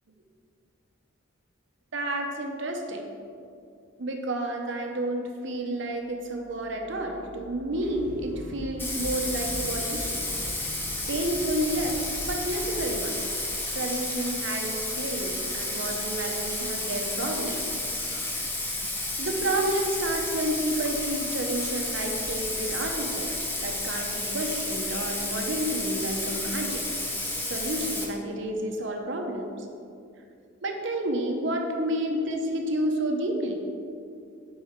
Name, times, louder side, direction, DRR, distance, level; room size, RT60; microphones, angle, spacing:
voice 1, 1.9-3.1 4.0-10.2 11.1-12.0 12.3-13.2 13.7-17.6 19.2-23.3 23.6-26.8 27.4-29.5 30.6-33.6, right 1 dB, 60° right, 3 dB, 0.8 m, -30 dB
sound 1, 5.9-14.7, left 2 dB, 55° left, 0.6 m, -46 dB
sound 2, 7.7-13.0, equal, 25° left, 1.4 m, -43 dB
Bathtub (filling or washing), 8.8-28.1, left 2 dB, 10° left, 0.8 m, -31 dB
8.7 x 5.5 x 3.6 m, 2.5 s
head